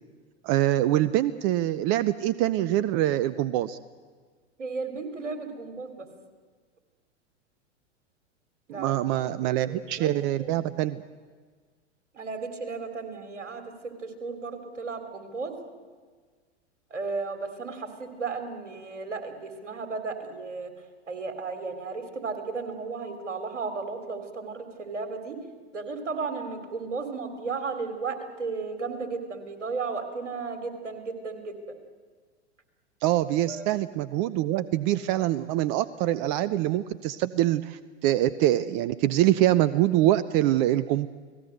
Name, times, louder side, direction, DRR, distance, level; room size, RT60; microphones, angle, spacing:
voice 1, 0.4-3.8 8.7-11.0 33.0-41.1, right 14 dB, 40° right, 16 dB, 0.8 m, -24 dB
voice 2, 4.6-6.1 8.7-10.5 12.1-15.5 16.9-20.7 21.1-25.4 25.7-31.6 33.5-33.7, right 4 dB, 75° right, 7 dB, 3.8 m, -34 dB
30.0 x 18.5 x 7.9 m, 1.5 s
figure-of-eight pair, 95°, 36 cm